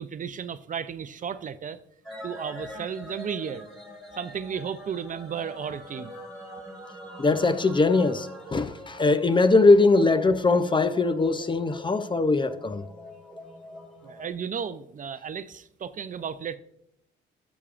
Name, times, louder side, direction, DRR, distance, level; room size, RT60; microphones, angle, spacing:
voice 1, 0.0-1.8 2.2-3.6 4.1-6.1 14.0-16.6, right 7 dB, 40° right, 0.5 m, -34 dB
sound 1, 2.0-14.3, equal, ahead, 3.5 m, -43 dB
voice 2, 7.2-12.8, left 3 dB, 25° left, 0.6 m, -21 dB
13.5 x 7.1 x 2.5 m
cardioid pair, 90°, 20 cm